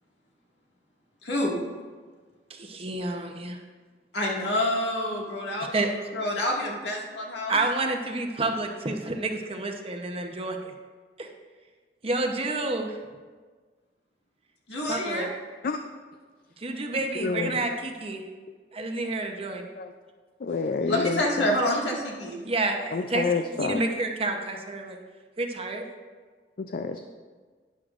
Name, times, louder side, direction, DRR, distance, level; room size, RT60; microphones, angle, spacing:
voice 1, 1.2-1.6 4.1-5.8 6.1-7.6 14.7-15.3 20.9-22.4, left 1 dB, 75° left, -2 dB, 1.9 m, -27 dB
voice 2, 2.5-3.6 5.7-5.9 7.5-10.7 11.2-11.3 12.0-12.9 14.8-15.3 16.6-18.2 18.7-19.6 22.4-23.2 23.6-25.0 25.4-25.8, right 2 dB, 35° right, 3 dB, 0.8 m, -29 dB
voice 3, 17.2-17.7 19.8-19.9 20.4-21.6 22.9-23.8 26.6-27.0, left 4 dB, 55° left, 7 dB, 0.4 m, -29 dB
11.0 x 10.5 x 2.5 m, 1.5 s
head